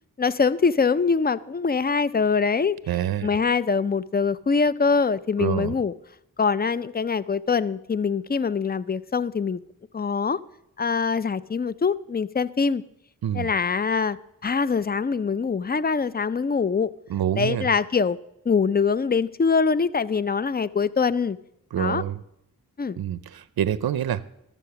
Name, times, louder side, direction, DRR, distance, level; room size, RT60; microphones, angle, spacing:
voice 1, 0.2-2.8 3.2-5.9 6.4-9.6 9.9-10.4 10.8-12.8 13.3-14.2 14.4-16.9 17.4-18.2 18.5-21.4 21.8-22.0 22.8-23.0, left 5 dB, 25° left, 17 dB, 0.4 m, -23 dB
voice 2, 2.9-3.3 5.4-5.7 13.2-13.5 17.1-17.7 21.7-22.2 23.0-24.2, right 10 dB, 80° right, 16 dB, 0.5 m, -26 dB
13.0 x 7.1 x 5.8 m, 0.80 s
cardioid pair, 55°, 36 cm